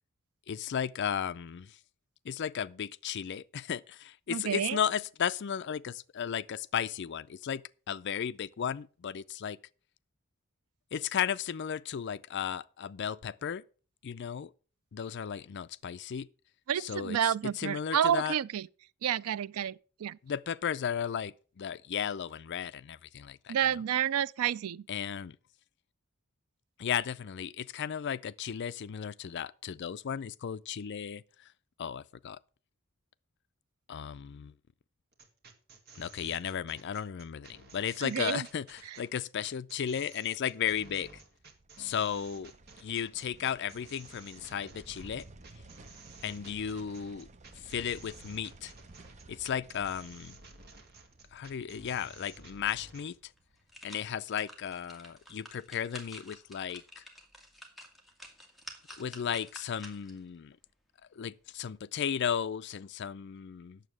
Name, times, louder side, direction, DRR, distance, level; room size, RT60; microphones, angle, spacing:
voice 1, 0.5-1.8 2.2-9.6 10.9-13.6 14.0-14.5 14.9-16.3 16.8-17.2 17.6-18.3 20.2-23.6 24.9-25.4 26.8-31.5 31.8-32.4 33.9-34.5 35.9-41.2 41.8-42.5 42.8-45.3 46.2-47.3 47.5-48.7 49.3-50.4 51.3-53.3 53.8-57.0 59.0-60.6 61.1-63.8, left 8 dB, 55° left, 0.4 m, -35 dB
voice 2, 4.3-4.8 16.7-18.7 19.0-20.2 23.5-24.9 38.0-38.5 38.9-39.0, right 9 dB, 80° right, 0.4 m, -30 dB
sound 1, 35.1-53.1, right 4 dB, 50° right, 1.8 m, -54 dB
sound 2, 41.2-54.4 54.8-54.9, right 2 dB, 30° right, 0.7 m, -55 dB
sound 3, 53.4-60.2 60.7-60.8, equal, ahead, 1.9 m, -50 dB
9.1 x 7.2 x 6.2 m
head